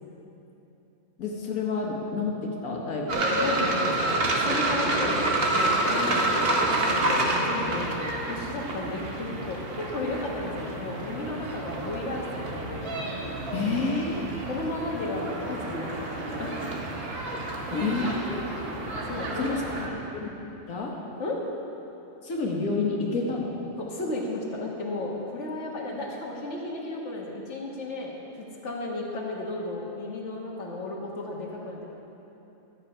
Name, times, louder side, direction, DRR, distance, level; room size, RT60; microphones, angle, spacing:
voice 1, 1.2-3.3 13.5-14.3 17.7-18.5 19.4-19.6 20.1-20.3 20.7-20.9 22.2-23.6, left 3 dB, 85° left, -2 dB, 1.7 m, -29 dB
sound 1, 3.1-19.9, right 2 dB, 45° right, 1.3 m, -29 dB
voice 2, 3.3-5.2 5.5-12.9 14.4-16.7 19.1-20.0 21.2-21.4 23.8-28.1 28.4-31.9, left 2 dB, 55° left, -3 dB, 1.8 m, -34 dB
12.5 x 7.9 x 5.5 m, 3.0 s
omnidirectional pair, 1.4 m